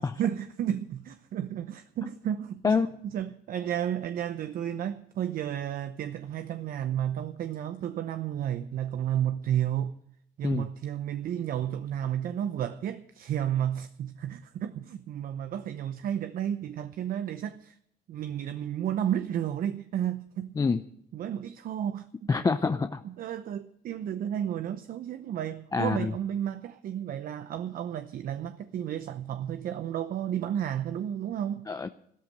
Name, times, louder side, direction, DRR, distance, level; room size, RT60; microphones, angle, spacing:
voice 1, 0.2-10.0 10.4-17.8 18.1-20.5 21.1-22.3 23.0-31.7, right 10 dB, 60° right, 0.8 m, -32 dB
voice 2, 22.3-23.0 25.7-26.1 31.7-31.9, left 4 dB, 20° left, 0.6 m, -26 dB
14.0 x 13.0 x 6.6 m
cardioid pair, 110°, 17 cm